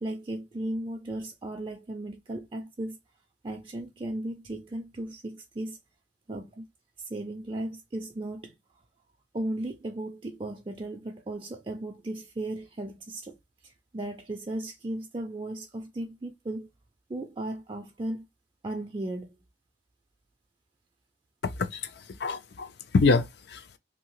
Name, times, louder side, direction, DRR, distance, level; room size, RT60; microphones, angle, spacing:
voice 1, 0.0-3.0 3.4-5.8 6.3-6.6 7.0-8.5 9.3-13.4 13.6-16.7 17.1-18.3 18.6-19.4, right 1 dB, 25° right, 0.4 m, -36 dB
voice 2, 21.6-21.9 22.2-23.8, left 4 dB, 60° left, 0.4 m, -26 dB
2.8 x 2.7 x 3.0 m
head